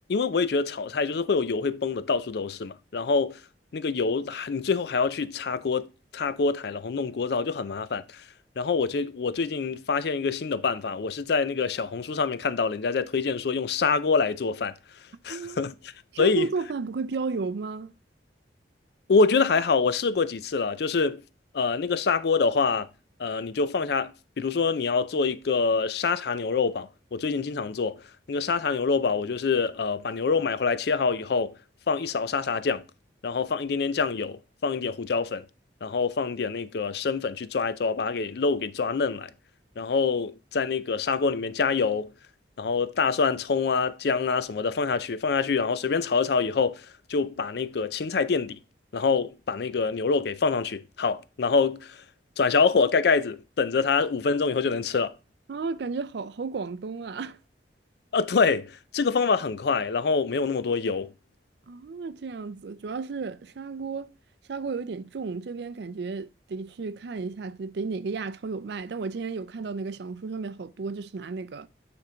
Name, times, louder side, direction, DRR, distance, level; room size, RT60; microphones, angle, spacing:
voice 1, 0.1-3.4 3.7-8.2 8.6-14.7 15.2-15.7 16.2-16.5 19.1-21.2 21.5-22.9 23.2-28.0 28.3-31.5 31.9-32.8 33.2-35.4 35.8-39.3 39.8-42.1 42.6-48.6 48.9-52.0 52.4-55.1 58.1-61.1, left 4 dB, 60° left, 0.4 m, -26 dB
voice 2, 16.1-17.9 55.5-57.4 61.7-64.1 64.5-71.7, right 4 dB, 60° right, 0.4 m, -33 dB
9.2 x 3.5 x 3.8 m
head